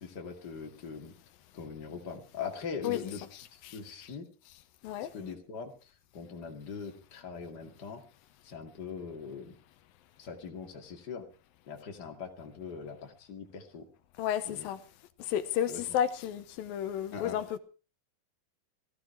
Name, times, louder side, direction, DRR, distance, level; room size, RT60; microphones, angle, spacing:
voice 1, 0.0-1.2 1.5-3.2 3.5-4.3 5.0-8.0 8.4-9.6 10.2-11.3 11.7-13.9 14.4-14.7 15.7-15.8 17.1-17.4, left 6 dB, 30° left, 2.5 m, -41 dB
voice 2, 14.2-14.8 15.2-17.6, left 10 dB, 85° left, 2.7 m, -32 dB
16.0 x 15.5 x 4.6 m
omnidirectional pair, 4.1 m